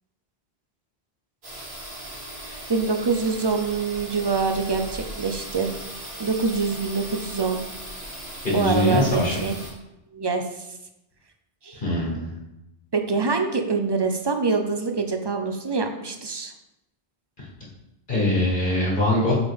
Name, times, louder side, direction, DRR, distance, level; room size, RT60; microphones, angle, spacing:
sound 1, 1.4-9.7, right 1 dB, 85° right, 2.2 m, -38 dB
voice 1, 2.7-5.7 6.2-7.6 8.5-9.6 10.1-10.7 11.6-11.8 12.9-16.5, right 4 dB, 35° right, 5 dB, 0.4 m, -25 dB
voice 2, 8.4-9.4 11.7-12.3 17.4-17.5 18.1-19.3, left 1 dB, 55° left, -5 dB, 1.7 m, -22 dB
8.0 x 3.7 x 3.5 m, 0.89 s
omnidirectional pair, 1.0 m